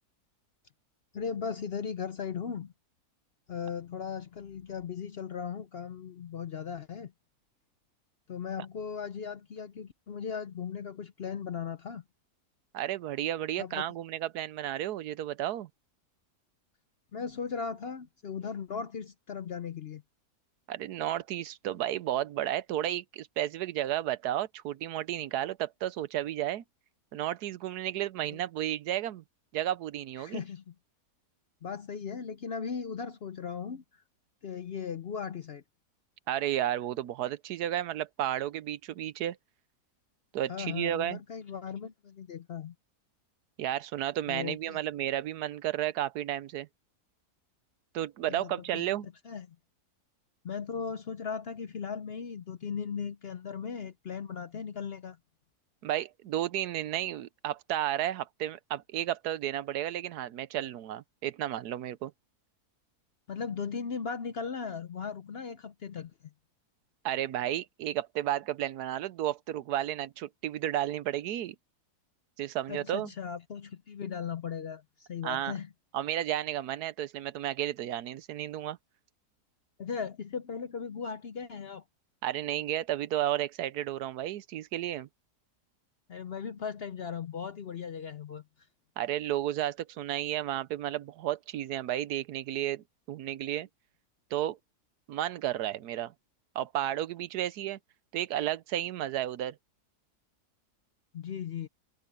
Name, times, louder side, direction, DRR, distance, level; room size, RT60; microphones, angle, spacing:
voice 1, 1.1-2.7 3.5-7.1 8.3-12.0 13.6-13.8 17.1-20.0 28.3-28.4 30.2-30.7 31.6-34.0 34.4-35.6 40.5-42.7 44.3-44.8 48.3-49.6 50.4-55.2 63.3-66.3 72.7-75.7 79.8-81.8 86.1-88.4 101.1-101.7, left 6 dB, 55° left, 0.7 m, -37 dB
voice 2, 12.7-15.7 20.7-26.6 27.1-29.2 29.5-30.4 36.3-39.4 40.3-41.2 43.6-46.7 47.9-49.1 55.8-62.1 67.0-71.5 72.4-73.1 75.2-75.5 75.9-78.8 82.2-85.1 89.0-93.7 94.3-94.6 95.1-96.1 96.5-97.8 98.1-99.6, right 12 dB, 80° right, 1.2 m, -32 dB
omnidirectional pair, 1.7 m